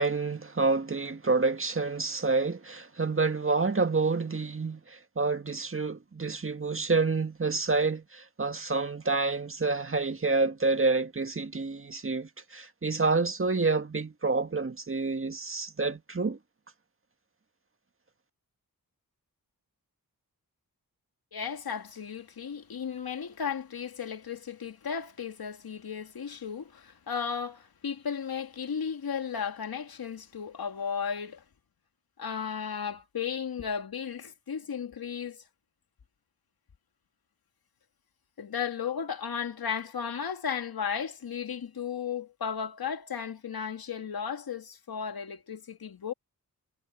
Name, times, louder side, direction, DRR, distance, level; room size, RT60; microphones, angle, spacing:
voice 1, 0.0-16.4, right 3 dB, 35° right, 1.8 m, -28 dB
voice 2, 21.3-31.4 32.2-35.4 38.4-46.1, left 7 dB, 75° left, 2.3 m, -35 dB
cardioid pair, 60°, 37 cm